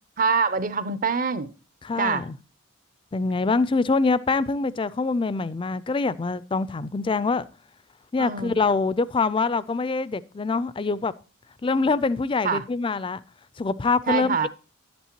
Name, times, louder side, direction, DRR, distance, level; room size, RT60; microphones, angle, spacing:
voice 1, 0.2-1.5 2.0-2.2 8.2-8.6 12.4-12.6 14.1-14.5, right 5 dB, 40° right, 0.5 m, -24 dB
voice 2, 1.8-2.3 3.1-7.5 8.1-11.1 11.6-13.2 13.6-14.5, left 4 dB, 25° left, 0.3 m, -24 dB
11.0 x 8.3 x 2.9 m
head